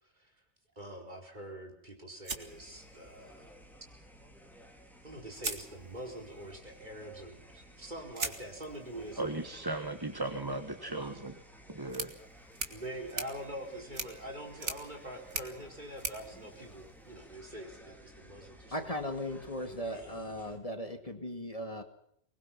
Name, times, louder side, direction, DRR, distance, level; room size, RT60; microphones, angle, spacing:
voice 1, 0.0-0.3 0.8-3.5 5.0-9.6 12.7-18.9 19.9-20.2, right 1 dB, 40° right, 3 dB, 4.7 m, -45 dB
sound 1, 2.2-3.4 4.7-4.8 5.3-6.3 8.1-17.3, right 4 dB, 85° right, 2.5 m, -43 dB
sound 2, 2.4-20.6, equal, ahead, 4.7 m, -55 dB
voice 2, 9.2-11.4 11.7-12.1, right 2 dB, 20° right, 8 dB, 1.4 m, -36 dB
voice 3, 18.7-21.8, left 1 dB, 30° left, 6 dB, 2.2 m, -37 dB
24.0 x 21.0 x 5.8 m, 0.72 s
omnidirectional pair, 1.2 m